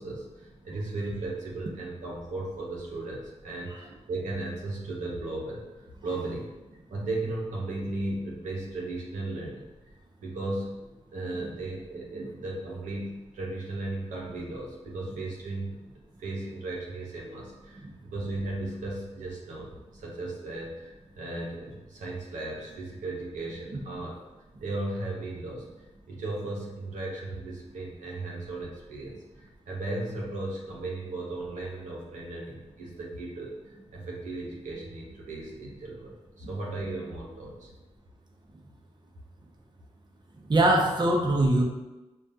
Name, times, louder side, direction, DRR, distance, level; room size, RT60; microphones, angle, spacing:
voice 1, 0.0-5.6 6.0-6.5 6.9-9.6 10.2-15.8 16.2-17.9 18.1-24.1 24.6-25.7 26.1-33.5 33.9-37.7, right 2 dB, 90° right, -3 dB, 0.7 m, -36 dB
voice 2, 40.5-41.6, right 1 dB, 35° right, 0 dB, 0.7 m, -23 dB
5.0 x 2.3 x 2.7 m, 1.1 s
cardioid pair, 55°, 12 cm